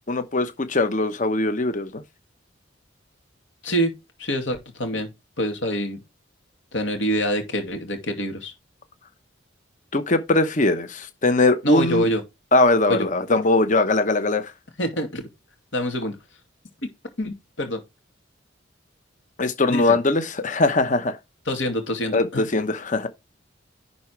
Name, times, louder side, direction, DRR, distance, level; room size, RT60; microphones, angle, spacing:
voice 1, 0.1-2.0 9.9-12.0 12.5-14.5 19.4-21.2 22.1-23.1, left 2 dB, 40° left, 0.9 m, -21 dB
voice 2, 4.2-5.1 5.4-6.0 6.7-8.5 11.6-12.2 12.9-13.1 14.8-15.3 15.7-16.2 16.8-16.9 17.2-17.8 19.7-20.0 21.5-22.4, equal, 80° left, 2.6 m, -26 dB
11.0 x 4.2 x 4.6 m
head